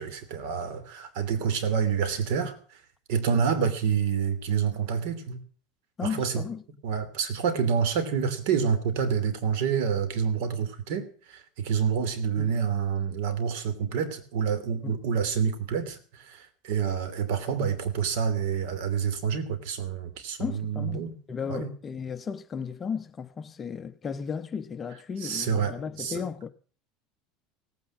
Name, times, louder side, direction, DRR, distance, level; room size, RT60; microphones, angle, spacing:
voice 1, 0.0-2.6 3.1-5.4 6.0-6.4 6.8-21.1 21.5-21.7 25.2-26.2, right 7 dB, 70° right, 2.8 m, -28 dB
voice 2, 6.0-6.6 12.4-12.5 14.8-15.0 20.4-26.5, left 6 dB, 20° left, 0.8 m, -35 dB
17.5 x 9.4 x 7.3 m
supercardioid pair, 145°, 0 cm